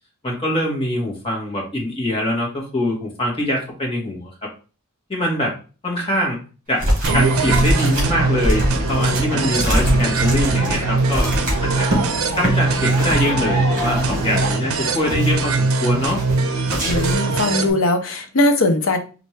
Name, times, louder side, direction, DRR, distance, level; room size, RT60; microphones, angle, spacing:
voice 1, 0.2-4.3 5.1-5.5 5.8-6.4 6.7-6.9 7.1-11.3 11.6-11.9 12.4-16.2, left 1 dB, 25° left, -2 dB, 1.3 m, -23 dB
sound 1, 6.8-7.2 7.5-12.0 12.3-12.5 12.9-13.3 13.8-14.5 14.9-15.5 16.0-16.4 16.7-17.3, equal, 35° right, 1.6 m, -23 dB
sound 2, 7.0-17.7, right 3 dB, 75° right, 0.5 m, -21 dB
sound 3, 7.1-14.5, equal, 10° right, 2.2 m, -28 dB
voice 2, 16.8-19.0, left 2 dB, 70° left, 7 dB, 0.7 m, -19 dB
4.2 x 2.6 x 3.2 m, 0.35 s
head